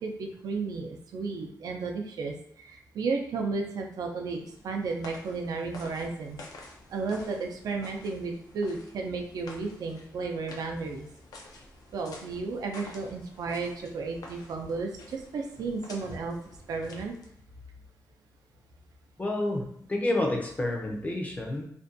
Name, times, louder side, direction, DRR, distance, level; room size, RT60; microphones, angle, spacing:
voice 1, 0.0-6.4 6.9-11.1 11.9-16.4 16.7-17.1, right 4 dB, 80° right, 2 dB, 0.4 m, -33 dB
sound 1, 4.2-17.5, left 2 dB, 80° left, 0.4 m, -49 dB
voice 2, 19.2-21.6, left 1 dB, 25° left, 1 dB, 0.5 m, -29 dB
2.5 x 2.2 x 2.5 m, 0.70 s
wide cardioid pair, 145°, 6 cm